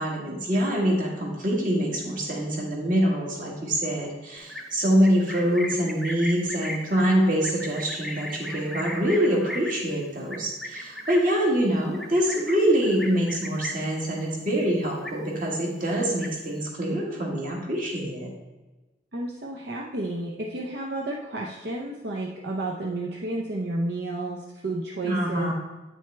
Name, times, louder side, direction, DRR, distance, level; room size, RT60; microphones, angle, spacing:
voice 1, 0.0-18.3 25.0-25.5, equal, 45° right, -2 dB, 1.8 m, -25 dB
Livestock farm animals working animals, 4.4-14.0 14.3-14.6 14.9-15.6 15.9-16.6, left 1 dB, ahead, 0.5 m, -37 dB
voice 2, 19.1-25.5, right 2 dB, 70° right, -2 dB, 0.7 m, -31 dB
9.0 x 6.3 x 3.4 m, 1.1 s
head